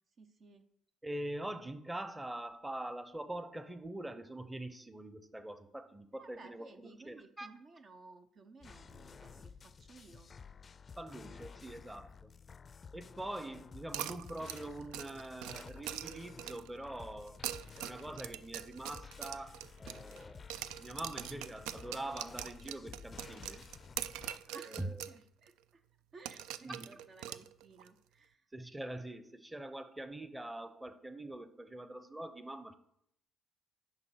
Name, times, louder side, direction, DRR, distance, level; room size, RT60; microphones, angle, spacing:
voice 1, 0.2-0.6 6.1-10.3 24.4-24.8 25.1-25.8 26.1-28.5, right 3 dB, 50° right, 8 dB, 0.7 m, -56 dB
voice 2, 1.0-6.7 7.1-7.5 11.0-12.3 12.9-17.4 17.8-20.4 20.8-23.7 24.7-25.0 26.6-26.9 28.5-32.7, right 1 dB, 15° right, 11 dB, 0.9 m, -44 dB
sound 1, 8.6-24.4, left 5 dB, 40° left, 0.4 m, -53 dB
sound 2, 13.9-16.8 17.3-20.2 20.5-25.2 25.5-25.6 26.2-27.9, right 12 dB, 80° right, 0.3 m, -43 dB
10.5 x 4.0 x 6.4 m, 0.73 s
hypercardioid pair, 55°, 0 cm